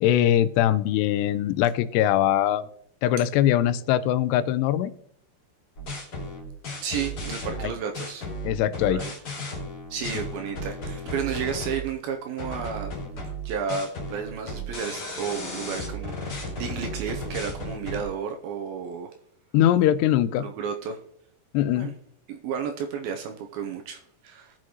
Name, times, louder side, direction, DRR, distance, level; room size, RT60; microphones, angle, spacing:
voice 1, 0.0-2.7 3.0-4.9 7.6-7.7 8.4-9.0 19.5-20.5 21.5-21.9, left 11 dB, 90° left, 14 dB, 2.8 m, -22 dB
sound 1, 5.8-11.9 12.4-18.0, equal, 40° left, 3.0 m, -35 dB
voice 2, 6.8-8.3 8.9-9.1 9.9-12.9 13.4-19.1 20.4-21.0 21.7-21.9 22.3-24.5, right 7 dB, 80° right, 4 dB, 2.3 m, -32 dB
18.5 x 6.4 x 3.0 m, 0.68 s
omnidirectional pair, 4.8 m